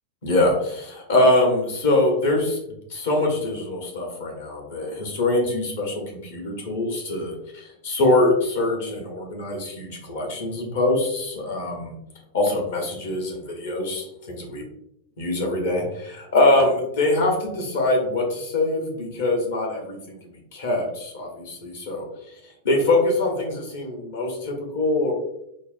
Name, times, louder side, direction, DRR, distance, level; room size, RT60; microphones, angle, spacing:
voice 1, 0.2-2.6 2.9-5.9 6.2-11.9 12.3-14.6 15.2-20.2 20.5-22.1 22.6-25.1, left 2 dB, 60° left, 0 dB, 0.9 m, -23 dB
4.3 x 2.1 x 2.5 m, 0.80 s
figure-of-eight pair, 90°, 0 cm